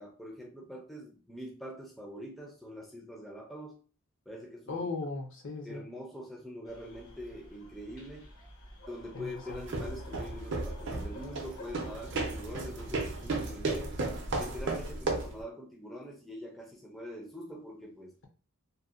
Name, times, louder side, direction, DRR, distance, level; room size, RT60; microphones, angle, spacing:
voice 1, 0.0-3.7 4.3-4.9 5.6-8.3 8.9-13.9 14.3-18.1, equal, ahead, -2 dB, 0.4 m, -44 dB
voice 2, 4.7-5.8 9.1-9.6, left 3 dB, 55° left, 3 dB, 0.6 m, -37 dB
sound 1, 6.6-13.4, left 1 dB, 80° left, 1.0 m, -51 dB
sound 2, 9.5-15.4, right 3 dB, 55° right, 0.5 m, -34 dB
2.6 x 2.1 x 2.4 m, 0.38 s
head